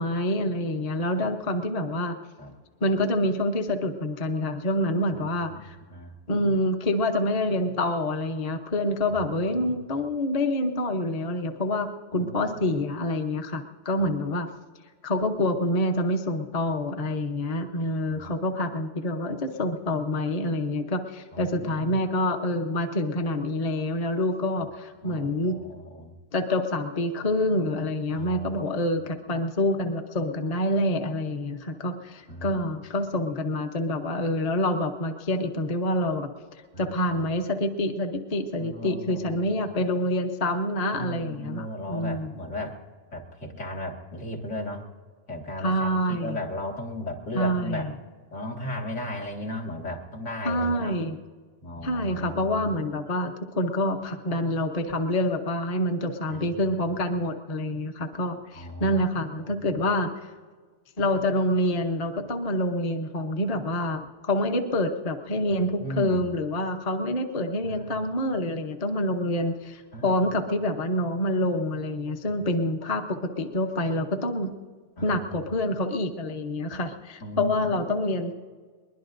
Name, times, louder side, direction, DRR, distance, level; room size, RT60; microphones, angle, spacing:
voice 1, 0.0-2.2 2.8-5.8 6.3-14.5 15.0-25.6 26.3-36.3 36.8-42.3 45.6-46.4 47.3-47.9 50.4-51.2 51.8-60.1 61.0-74.5 75.0-78.3, left 1 dB, 35° left, 5 dB, 0.9 m, -27 dB
voice 2, 9.1-9.7 12.2-12.7 18.2-18.3 21.3-22.0 25.0-26.1 28.1-28.5 32.3-32.6 36.7-36.9 38.6-39.6 40.9-42.8 43.1-44.8 45.3-47.9 48.3-51.0 51.6-52.8 56.3-56.7 58.5-59.0 59.5-59.7 65.5-66.2 67.6-68.1 69.9-70.3 72.3-72.4 75.0-75.5 77.2-77.8, left 1 dB, 75° left, 0 dB, 2.4 m, -36 dB
22.0 x 21.0 x 2.6 m, 1.5 s
omnidirectional pair, 1.3 m